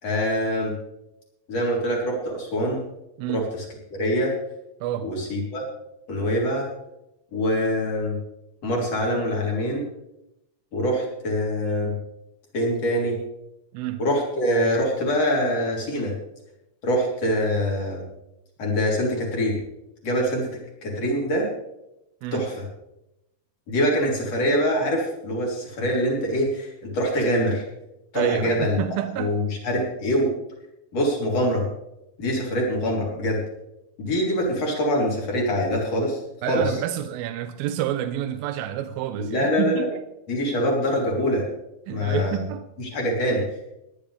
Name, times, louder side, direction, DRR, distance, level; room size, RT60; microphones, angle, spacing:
voice 1, 0.0-0.7 1.5-2.8 3.3-3.6 3.9-4.3 5.0-5.6 6.1-6.7 7.3-8.2 8.6-9.8 10.7-11.9 12.5-13.2 14.0-16.1 16.8-18.0 18.6-19.6 20.0-20.5 20.8-21.5 22.3-22.5 23.7-27.6 28.1-28.8 29.2-30.3 30.9-31.6 32.2-33.4 34.0-36.2 36.5-36.6 39.2-39.9 40.3-41.5 41.9-42.4 42.8-43.4, equal, 45° left, 4.6 m, -24 dB
voice 2, 3.2-3.5 4.8-5.1 13.7-14.0 22.2-22.5 28.1-29.4 36.4-40.0 41.9-42.7, right 12 dB, 85° right, 2.4 m, -29 dB
20.0 x 11.0 x 3.4 m
omnidirectional pair, 4.0 m